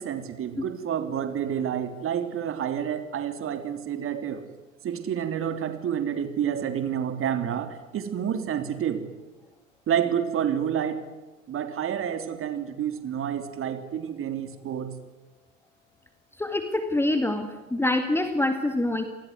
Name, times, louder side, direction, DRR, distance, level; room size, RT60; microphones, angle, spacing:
voice 1, 0.0-4.4 4.8-9.0 9.9-11.0 11.5-14.9, right 9 dB, 30° right, 9 dB, 3.3 m, -29 dB
voice 2, 16.4-19.0, left 1 dB, 5° left, 7 dB, 2.0 m, -25 dB
29.0 x 20.0 x 9.8 m, 1.1 s
figure-of-eight pair, 75°, 41 cm